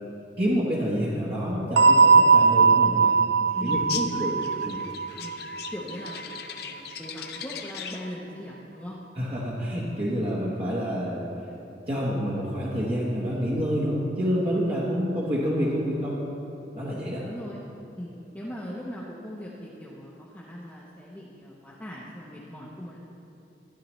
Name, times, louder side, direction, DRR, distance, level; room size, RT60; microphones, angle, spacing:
voice 1, 0.4-3.1 3.6-4.3 4.6-4.8 9.1-11.3 11.9-16.2 16.7-17.2, equal, 30° right, -7 dB, 1.1 m, -28 dB
sound 1, 1.8-6.4, right 5 dB, 70° right, 0.4 m, -20 dB
voice 2, 3.5-4.5 5.2-5.4 5.7-9.0 17.2-17.6 18.0-23.0, equal, 10° left, -6 dB, 0.8 m, -40 dB
sound 2, 3.7-8.1, left 8 dB, 55° left, 0.5 m, -39 dB
13.0 x 10.0 x 3.1 m, 2.9 s
head